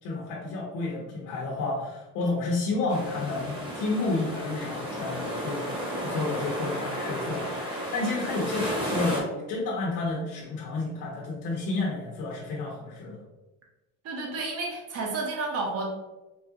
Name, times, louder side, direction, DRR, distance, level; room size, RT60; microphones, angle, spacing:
voice 1, 0.0-5.7 6.0-13.2, left 3 dB, 85° left, -3 dB, 1.0 m, -31 dB
sound 1, 2.9-9.2, equal, 15° right, 1.0 m, -33 dB
voice 2, 14.0-15.9, right 3 dB, 50° right, -1 dB, 0.9 m, -31 dB
4.7 x 2.4 x 2.8 m, 1.1 s
cardioid pair, 140°, 31 cm